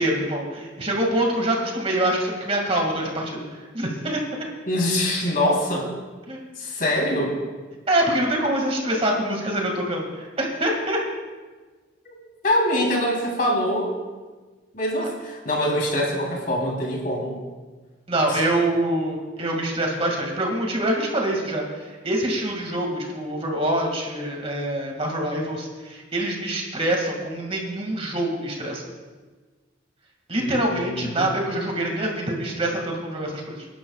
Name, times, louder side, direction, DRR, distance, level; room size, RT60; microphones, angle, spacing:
voice 1, 0.0-3.4 3.7-4.2 6.3-6.5 7.9-11.0 18.1-28.8 30.3-33.7, right 1 dB, 30° right, 0 dB, 2.1 m, -25 dB
voice 2, 4.7-5.9 6.6-7.3 12.0-12.2 12.4-14.0 14.7-17.3 18.3-18.4 30.4-31.3, left 1 dB, 45° left, -2 dB, 3.6 m, -24 dB
29.5 x 11.5 x 2.4 m, 1.3 s
head